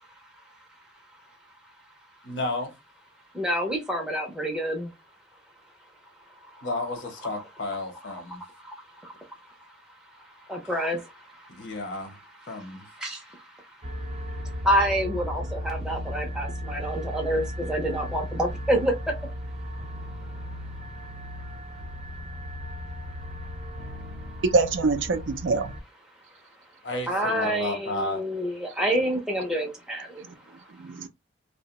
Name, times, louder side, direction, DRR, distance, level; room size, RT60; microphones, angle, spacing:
voice 1, 2.2-2.7 6.6-8.4 10.6-10.7 11.5-12.2 12.5-12.9 26.8-28.2, left 2 dB, 75° left, 0.8 m, -32 dB
voice 2, 3.3-4.9 6.5-6.7 8.3-9.4 10.1-11.7 12.5-19.1 27.1-30.7, equal, 5° right, 0.5 m, -29 dB
sound 1, 13.8-25.8, equal, 40° right, 0.8 m, -36 dB
voice 3, 24.5-25.7 30.8-31.1, right 3 dB, 85° right, 0.5 m, -24 dB
2.7 x 2.1 x 2.9 m
head